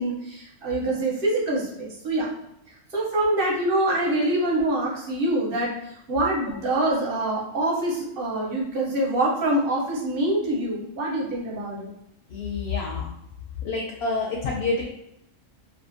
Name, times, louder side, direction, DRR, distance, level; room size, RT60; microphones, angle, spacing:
voice 1, 0.0-2.3 2.9-5.7 6.1-11.9, right 1 dB, 50° right, -3 dB, 0.8 m, -25 dB
voice 2, 12.3-13.1 13.6-14.8, left 3 dB, 65° left, -1 dB, 0.7 m, -28 dB
2.6 x 2.4 x 2.5 m, 0.81 s
omnidirectional pair, 1.3 m